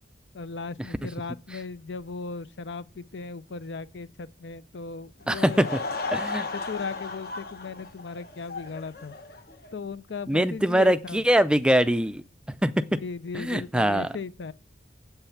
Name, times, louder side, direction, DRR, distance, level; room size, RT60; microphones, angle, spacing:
voice 1, 0.3-5.7 6.5-9.2 9.7-11.2 12.7-14.5, left 4 dB, 75° left, 0.6 m, -37 dB
Laughter / Crowd, 5.2-9.7, left 3 dB, 55° left, 1.1 m, -35 dB
voice 2, 5.3-5.7 6.1-6.5 10.3-12.2 12.6-12.8 13.3-14.1, equal, 5° right, 0.3 m, -22 dB
8.0 x 5.7 x 7.1 m
head